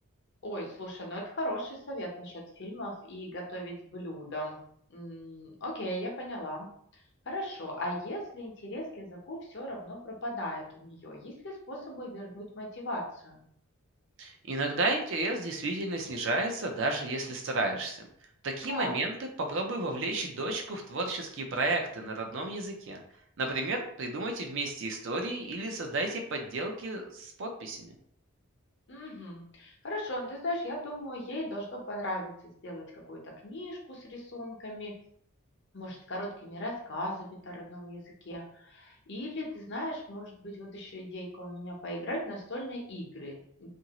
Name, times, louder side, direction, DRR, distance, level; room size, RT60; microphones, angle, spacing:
voice 1, 0.4-4.6 4.9-6.7 7.3-13.4 18.7-18.9 28.9-32.3 32.6-34.9 35.7-43.7, left 1 dB, 50° left, -1 dB, 0.8 m, -38 dB
voice 2, 14.2-18.0 18.4-19.1 19.4-23.0 23.4-27.9, right 2 dB, 55° right, 3 dB, 0.5 m, -32 dB
2.8 x 2.6 x 2.9 m, 0.66 s
head